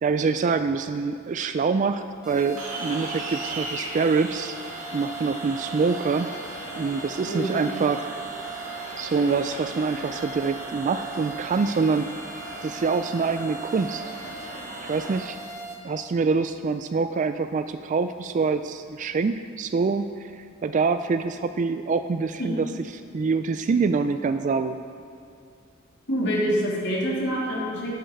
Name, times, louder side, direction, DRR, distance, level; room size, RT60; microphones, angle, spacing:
voice 1, 0.0-4.6 4.9-6.3 6.7-8.1 9.0-12.1 12.6-14.1 14.8-15.4 15.8-22.7 23.1-24.8, right 4 dB, 35° right, 10 dB, 0.3 m, -25 dB
sound 1, 2.2-15.7, right 3 dB, 5° right, 2.4 m, -39 dB
sound 2, 2.6-15.2, right 2 dB, 70° right, 2.0 m, -37 dB
voice 2, 26.1-27.9, equal, 55° left, -5 dB, 3.1 m, -26 dB
13.0 x 10.5 x 4.6 m, 2.4 s
head